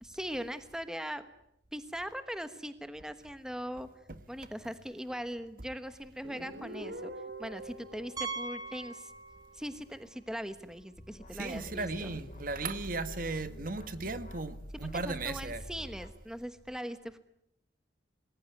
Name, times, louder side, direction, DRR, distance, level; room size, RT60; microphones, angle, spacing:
voice 1, 0.0-1.3 1.7-3.9 4.3-9.1 9.5-12.1 14.7-17.2, equal, 5° right, 1.2 m, -40 dB
Guitar, 6.2-9.7, right 1 dB, 65° right, 4.2 m, -46 dB
Piano, 8.2-9.8 10.0-10.2 10.8-10.9 11.1-11.2 13.3-13.4, right 4 dB, 20° right, 3.1 m, -40 dB
sound 1, 11.0-16.1, equal, 40° left, 2.7 m, -46 dB
voice 2, 11.3-15.7, right 3 dB, 50° right, 1.6 m, -36 dB
27.0 x 20.5 x 9.6 m
head